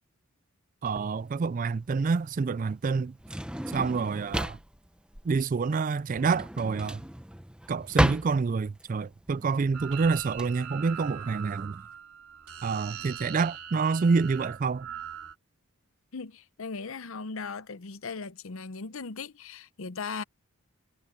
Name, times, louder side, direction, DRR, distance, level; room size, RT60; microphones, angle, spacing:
voice 1, 0.8-3.1 3.7-4.6 5.3-7.0 7.7-11.8 12.6-14.9, right 4 dB, 35° right, 0.3 m, -27 dB
Drawer open or close, 0.9-10.5, equal, 5° right, 0.9 m, -33 dB
sound 1, 9.7-15.3, right 8 dB, 75° right, 3.9 m, -41 dB
voice 2, 16.1-20.2, left 4 dB, 65° left, 0.7 m, -38 dB
head